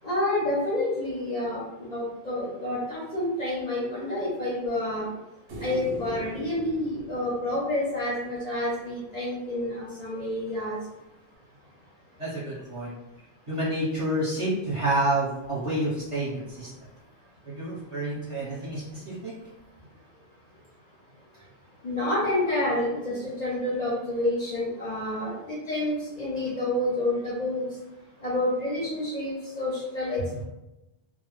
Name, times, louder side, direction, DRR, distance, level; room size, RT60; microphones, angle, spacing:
voice 1, 0.0-5.1 5.6-10.8 21.8-27.6 28.2-30.4, left 1 dB, 45° left, -7 dB, 0.6 m, -29 dB
sound 1, 5.5-8.8 11.3-11.4, right 2 dB, 85° right, 0.9 m, -40 dB
voice 2, 12.2-12.9 13.5-16.7 17.4-19.3, right 1 dB, 35° right, -8 dB, 0.8 m, -29 dB
2.0 x 2.0 x 3.0 m, 0.96 s
omnidirectional pair, 1.1 m